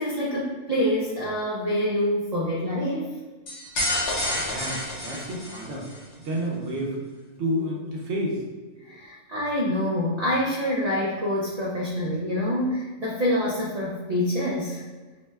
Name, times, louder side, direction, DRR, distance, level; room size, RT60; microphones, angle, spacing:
voice 1, 0.0-3.0 8.8-14.8, left 1 dB, 85° right, -5 dB, 0.3 m, -26 dB
sound 1, 3.5-6.0, left 1 dB, 65° left, 1.0 m, -29 dB
voice 2, 4.2-4.8 5.0-5.8 6.2-7.0 7.4-8.4, equal, 65° right, -3 dB, 0.9 m, -29 dB
2.8 x 2.1 x 3.2 m, 1.3 s
omnidirectional pair, 1.3 m